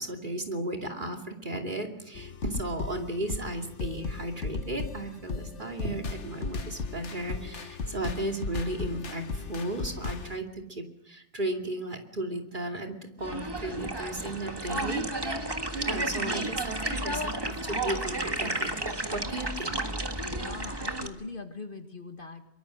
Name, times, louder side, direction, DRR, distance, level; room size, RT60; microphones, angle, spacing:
voice 1, 0.0-18.7 19.1-19.8, right 1 dB, 40° right, 2 dB, 2.9 m, -35 dB
sound 1, 2.1-10.4, left 4 dB, 65° left, 1.7 m, -36 dB
sound 2, 13.2-21.1, right 1 dB, 20° right, 1.6 m, -32 dB
voice 2, 20.2-22.4, left 3 dB, 45° left, 6 dB, 2.0 m, -41 dB
23.5 x 23.5 x 6.4 m, 0.83 s
omnidirectional pair, 1.3 m